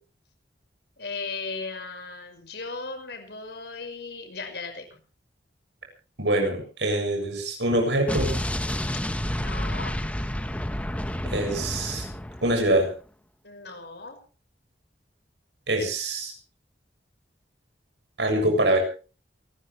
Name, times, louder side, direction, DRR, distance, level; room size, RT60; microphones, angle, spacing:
voice 1, 1.0-4.8 9.4-10.0 13.4-14.2, left 4 dB, 70° left, 6 dB, 5.6 m, -36 dB
voice 2, 6.2-8.4 11.3-12.1 12.4-12.9 15.7-16.3 18.2-18.8, right 1 dB, 80° right, 4 dB, 7.4 m, -24 dB
Explosion, 8.1-12.9, left 1 dB, 10° left, 1.3 m, -30 dB
28.0 x 14.0 x 3.3 m, 0.36 s
head